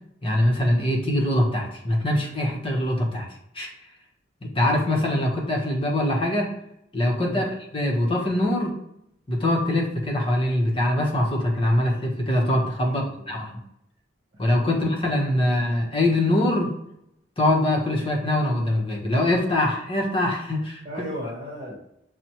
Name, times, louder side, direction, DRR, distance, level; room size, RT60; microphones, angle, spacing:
voice 1, 0.2-3.3 3.5-3.7 4.4-6.5 6.9-8.8 9.3-13.5 14.4-16.7 17.4-20.8, left 1 dB, 30° left, 0 dB, 0.9 m, -23 dB
voice 2, 12.8-13.2 15.4-15.5 20.8-21.8, equal, 25° right, -7 dB, 1.1 m, -34 dB
5.9 x 2.0 x 2.9 m, 0.78 s
head